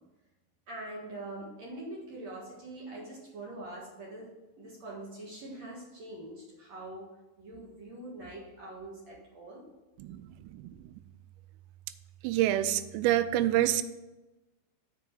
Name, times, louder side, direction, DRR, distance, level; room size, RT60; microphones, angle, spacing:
voice 1, 0.7-4.3 4.6-7.1 7.4-9.6, right 2 dB, 60° right, -5 dB, 1.7 m, -43 dB
voice 2, 10.0-10.9 12.2-13.8, right 13 dB, 85° right, 12 dB, 3.1 m, -28 dB
7.3 x 5.9 x 6.5 m, 1.1 s
omnidirectional pair, 5.8 m